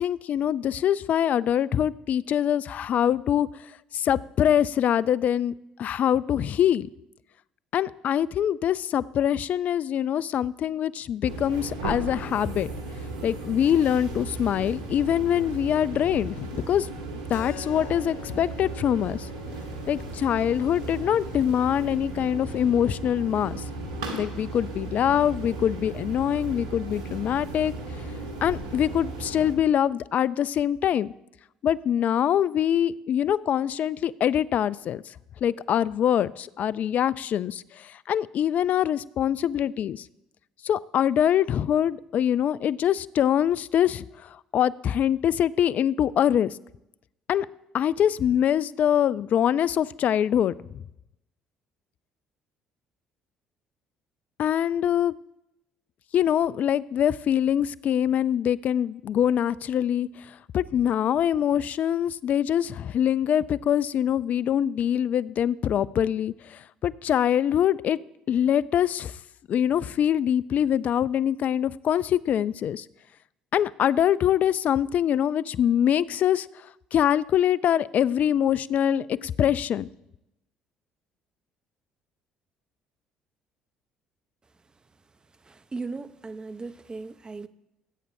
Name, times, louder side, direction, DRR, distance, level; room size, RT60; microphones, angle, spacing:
voice 1, 0.0-3.5 3.9-5.5 5.8-6.9 7.7-12.7 13.2-16.9 17.3-19.3 19.9-23.6 24.1-27.7 28.4-31.1 31.6-35.0 35.4-40.0 40.6-44.0 44.5-46.6 47.3-47.5 47.7-50.8 54.4-55.1 56.1-60.1 60.5-68.0 68.3-69.1 69.5-72.9 73.5-76.5 76.9-79.9, left 10 dB, 55° left, 0.4 m, -24 dB
sound 1, 11.2-29.5, right 2 dB, 90° right, 1.6 m, -36 dB
Keyboard (musical), 17.3-22.4, left 10 dB, 75° left, 0.8 m, -47 dB
voice 2, 85.3-87.5, right 3 dB, 25° right, 0.8 m, -37 dB
20.5 x 8.7 x 2.7 m
hypercardioid pair, 60°, 3 cm